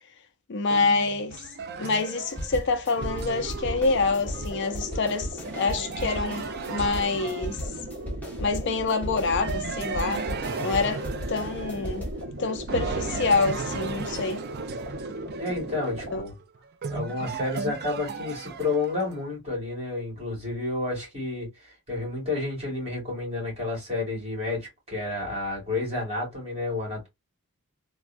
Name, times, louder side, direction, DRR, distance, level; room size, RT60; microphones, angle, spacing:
voice 1, 0.5-1.4 1.8-7.6 8.4-10.3 10.6-12.1 12.4-14.4 16.1-16.2, left 4 dB, 55° left, 0.4 m, -26 dB
sound 1, 0.7-8.1 9.4-12.3 12.7-19.1, right 5 dB, 50° right, 0.4 m, -36 dB
sound 2, 2.4-12.2, equal, 5° left, 0.9 m, -36 dB
sound 3, 3.1-16.2, right 1 dB, 70° right, 0.8 m, -38 dB
voice 2, 15.4-16.3 16.9-27.1, left 2 dB, 30° right, 2.2 m, -30 dB
3.4 x 2.2 x 2.4 m
head